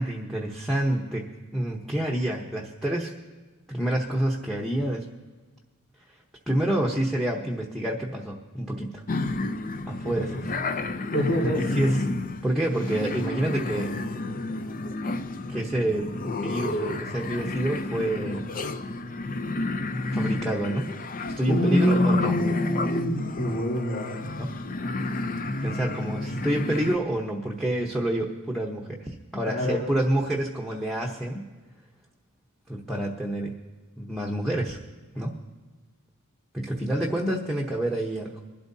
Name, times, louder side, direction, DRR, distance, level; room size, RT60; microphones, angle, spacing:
voice 1, 0.0-3.1 3.7-5.1 6.5-9.0 9.9-10.4 11.4-12.1 12.4-14.0 14.4-14.5 15.5-18.5 20.1-21.0 21.4-22.4 24.4-24.6 25.6-31.4 32.7-33.5 34.0-34.8 35.1-35.4 36.5-38.3, right 1 dB, ahead, -1 dB, 0.9 m, -28 dB
sound 1, 9.1-27.0, left 2 dB, 40° left, 0.6 m, -31 dB
voice 2, 10.0-10.5 11.1-11.6 21.5-24.3 29.4-29.8, left 1 dB, 85° left, -4 dB, 4.2 m, -25 dB
22.5 x 12.0 x 2.7 m, 1.3 s
head